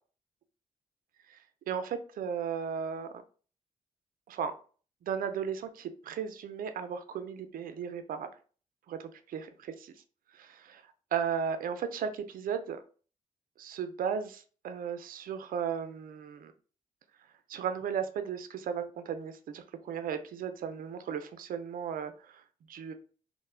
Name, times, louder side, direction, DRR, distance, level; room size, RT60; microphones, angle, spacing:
voice 1, 1.7-3.1 4.3-4.5 5.0-8.3 8.9-9.0 9.3-9.9 10.3-10.8 11.1-12.8 13.6-16.5 17.5-22.4 22.7-22.9, right 7 dB, 60° right, 9 dB, 0.4 m, -35 dB
3.0 x 2.0 x 2.2 m, 0.39 s
hypercardioid pair, 40°, 16 cm